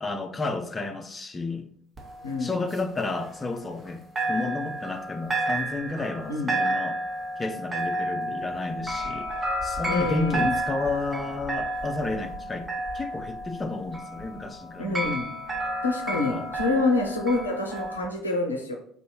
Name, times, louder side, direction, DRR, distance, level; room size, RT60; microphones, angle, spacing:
voice 1, 0.0-1.7 2.4-4.0 4.3-7.0 7.4-9.3 9.6-12.7 12.9-15.2 16.3-16.5, left 3 dB, 25° left, 6 dB, 0.4 m, -31 dB
sound 1, 2.0-3.9 4.2-18.1, right 1 dB, 25° right, 1.0 m, -31 dB
voice 2, 9.9-10.6 14.8-15.3 15.8-18.8, left 3 dB, 85° left, 2 dB, 0.4 m, -27 dB
4.2 x 2.6 x 2.9 m, 0.63 s
figure-of-eight pair, 55°, 0 cm